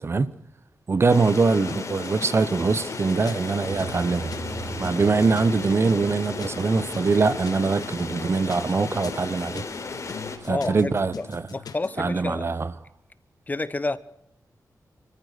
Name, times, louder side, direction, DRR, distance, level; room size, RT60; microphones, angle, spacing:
voice 1, 0.0-0.3 0.9-4.3 4.8-9.6 10.4-11.5 12.0-12.7, right 4 dB, 40° right, 0.9 m, -23 dB
sound 1, 1.1-10.4, left 4 dB, 50° left, 4.0 m, -35 dB
sound 2, 1.3-11.9, left 7 dB, 85° left, 1.5 m, -43 dB
sound 3, 3.7-11.0, right 2 dB, 15° right, 6.2 m, -40 dB
voice 2, 10.5-11.3 11.5-12.5 13.5-14.0, left 2 dB, 25° left, 1.1 m, -29 dB
28.5 x 14.5 x 6.6 m
wide cardioid pair, 115°, 6 cm